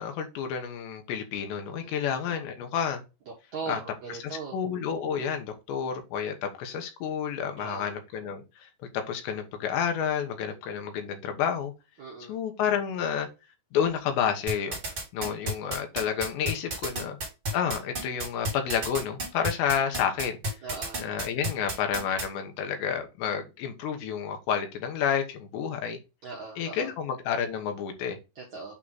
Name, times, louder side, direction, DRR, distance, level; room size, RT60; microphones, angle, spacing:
voice 1, 0.0-3.0 3.7-3.8 4.1-8.7 9.1-11.7 12.3-13.3 13.7-14.8 15.1-17.2 17.5-20.4 21.0-26.0 26.6-28.2, left 8 dB, 75° left, 3.2 m, -30 dB
voice 2, 1.7-2.0 3.5-4.6 7.6-7.9 12.0-12.4 20.6-21.0 26.2-26.9 28.3-28.7, right 5 dB, 75° right, 1.7 m, -39 dB
sound 1, 14.5-22.3, right 1 dB, 30° right, 1.8 m, -31 dB
8.7 x 3.0 x 4.0 m
omnidirectional pair, 5.6 m